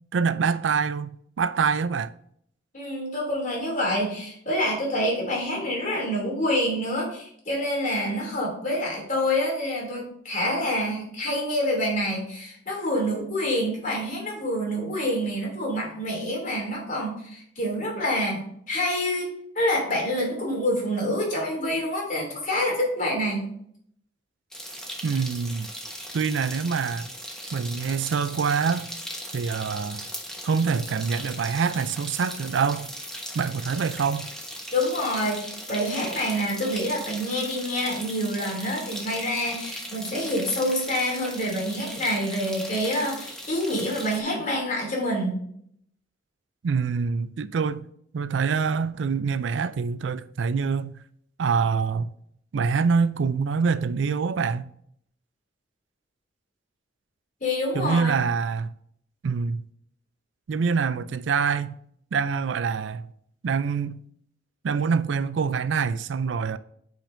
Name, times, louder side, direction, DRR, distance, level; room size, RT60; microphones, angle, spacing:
voice 1, 0.1-1.1 1.4-2.1 25.0-25.7 26.1-27.1 27.5-28.9 29.3-30.0 30.4-32.9 33.3-34.3 46.6-47.8 48.1-50.9 51.4-52.1 52.5-54.7 57.7-58.7 59.2-59.6 60.5-61.8 62.1-63.1 63.4-64.0 64.6-66.6, right 5 dB, 75° right, 0.4 m, -25 dB
voice 2, 2.7-23.5 34.7-45.4 57.4-58.1, left 1 dB, 45° left, 2.9 m, -27 dB
sound 1, 24.5-44.2, equal, 5° left, 1.2 m, -38 dB
8.8 x 5.1 x 2.6 m
head